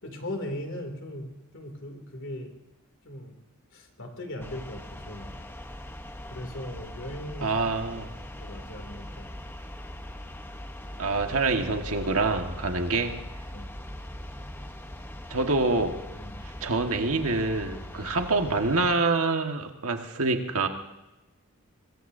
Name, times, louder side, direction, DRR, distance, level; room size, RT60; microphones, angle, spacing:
voice 1, 0.0-2.5 3.0-3.4 3.7-5.4 6.3-7.5 8.0-8.1 8.4-9.3 13.5-13.7 16.1-16.4, left 1 dB, 60° left, 5 dB, 2.7 m, -38 dB
sound 1, 4.4-18.9, left 1 dB, 10° left, 1.0 m, -41 dB
voice 2, 7.4-8.1 11.0-13.2 15.3-16.0 16.6-20.7, right 3 dB, 75° right, 4 dB, 1.6 m, -26 dB
24.5 x 21.5 x 2.7 m, 1.0 s
head